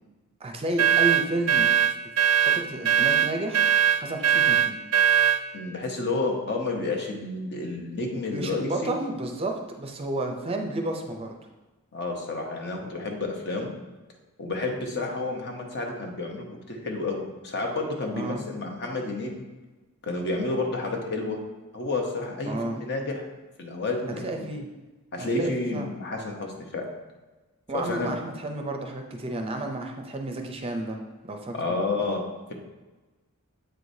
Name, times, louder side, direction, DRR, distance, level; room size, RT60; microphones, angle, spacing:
voice 1, 0.4-1.7 2.5-3.6 4.0-4.8 8.1-11.3 18.1-18.4 22.5-22.8 24.2-24.7 25.2-25.9 27.7-31.0 31.2-31.7, right 2 dB, 25° right, 3 dB, 0.5 m, -31 dB
sound 1, 0.8-5.4, right 9 dB, 75° right, 0.4 m, -21 dB
voice 2, 5.5-8.9 11.9-13.7 14.4-19.4 20.0-21.4 21.7-23.3 23.6-24.5 25.1-26.9 27.7-28.2 31.5-32.5, left 2 dB, 50° left, 2 dB, 0.9 m, -30 dB
7.7 x 4.8 x 2.7 m, 1.2 s
head